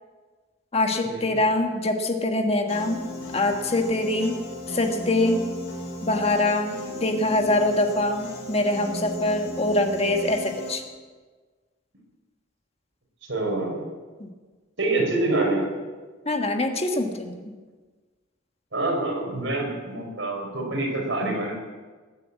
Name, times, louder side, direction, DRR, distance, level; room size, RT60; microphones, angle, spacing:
voice 1, 0.7-3.0 3.3-4.3 4.7-5.4 6.0-10.8 14.2-14.3 16.2-17.4, left 2 dB, 30° left, 4 dB, 1.5 m, -24 dB
Piano, 2.7-10.7, left 1 dB, 80° left, 5.5 m, -36 dB
voice 2, 13.3-13.9 14.8-15.7 18.7-21.5, right 2 dB, 70° right, 0 dB, 4.6 m, -26 dB
20.0 x 8.2 x 8.4 m, 1.4 s
head